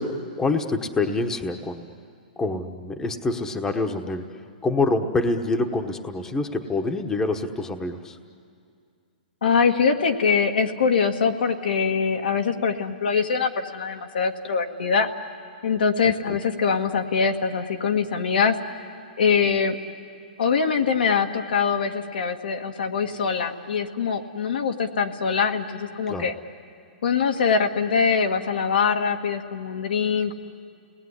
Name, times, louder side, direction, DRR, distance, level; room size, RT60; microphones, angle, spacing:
voice 1, 0.0-1.8 2.4-4.3 4.6-8.2 16.2-16.4 26.1-26.3, left 3 dB, 10° left, 5 dB, 1.2 m, -26 dB
voice 2, 9.4-15.1 15.6-18.6 19.2-19.8 20.4-26.3 27.0-30.3, left 6 dB, 80° left, 4 dB, 1.8 m, -23 dB
30.0 x 19.5 x 9.9 m, 2.3 s
hypercardioid pair, 145°, 5 cm